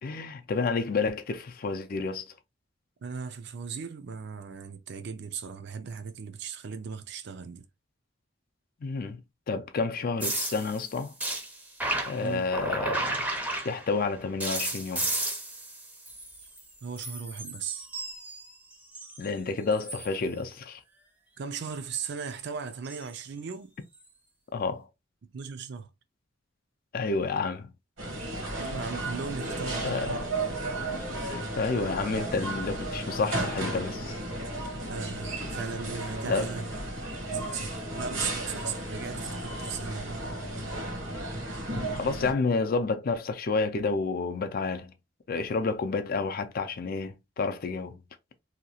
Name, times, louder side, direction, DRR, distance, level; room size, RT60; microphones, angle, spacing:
voice 1, 0.0-2.3 8.8-9.2 9.5-11.1 12.1-13.2 13.6-15.1 19.2-20.8 24.5-24.9 26.9-27.7 29.8-30.2 31.6-34.2 36.2-36.5 41.9-44.9 45.3-48.0, left 4 dB, 50° left, 0.4 m, -30 dB
voice 2, 3.0-7.7 12.2-12.5 16.8-17.9 21.4-23.8 25.3-25.9 28.6-30.7 34.8-36.7 37.3-40.3, right 6 dB, 60° right, 0.4 m, -37 dB
sound 1, 10.2-14.0 14.4-16.7 17.0-19.3 19.7-20.1 22.8-23.1 24.0-24.1, right 1 dB, 10° right, 0.6 m, -33 dB
sound 2, 28.0-42.3, right 1 dB, 80° right, 1.0 m, -34 dB
2.8 x 2.3 x 2.7 m
head